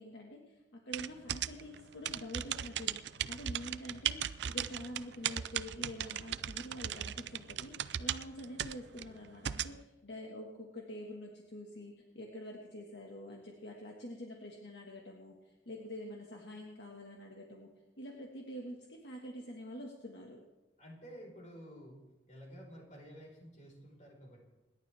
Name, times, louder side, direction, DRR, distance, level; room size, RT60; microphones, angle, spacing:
voice 1, 0.0-17.7 18.0-20.4, equal, 70° left, 0 dB, 1.8 m, -46 dB
sound 1, 0.9-9.8, right 10 dB, 70° right, 0.5 m, -38 dB
voice 2, 20.8-22.0 22.3-24.5, equal, 40° left, -1 dB, 4.8 m, -51 dB
27.0 x 11.5 x 3.5 m, 1.1 s
head